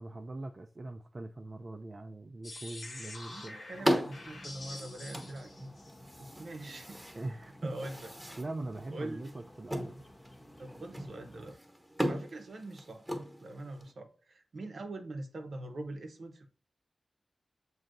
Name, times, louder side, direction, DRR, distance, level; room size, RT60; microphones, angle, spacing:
voice 1, 0.0-3.6 7.1-7.8 8.4-10.0, right 2 dB, 40° right, 0.4 m, -41 dB
sound 1, 2.4-6.2, left 2 dB, 70° left, 1.1 m, -47 dB
sound 2, 2.8-13.9, equal, 5° right, 1.1 m, -38 dB
voice 2, 3.3-5.7 6.2-7.0 7.6-8.1 8.9-9.3 10.6-11.6 12.0-13.0 13.4-16.5, right 2 dB, 75° right, 0.8 m, -43 dB
sound 3, 3.7-11.5, equal, 30° left, 0.9 m, -54 dB
7.5 x 2.7 x 2.5 m
wide cardioid pair, 95°, 0 cm